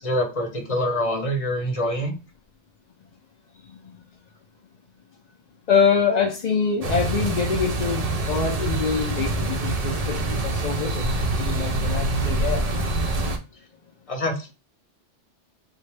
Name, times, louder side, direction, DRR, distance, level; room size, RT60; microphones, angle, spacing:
voice 1, 0.0-2.1 14.1-14.5, left 1 dB, 35° left, 0.8 m, -25 dB
voice 2, 3.5-4.1 5.7-11.1 11.4-12.6, left 6 dB, 55° left, 0.4 m, -25 dB
sound 1, 6.8-13.4, right 2 dB, 50° right, 0.4 m, -25 dB
3.9 x 2.2 x 3.2 m
omnidirectional pair, 1.2 m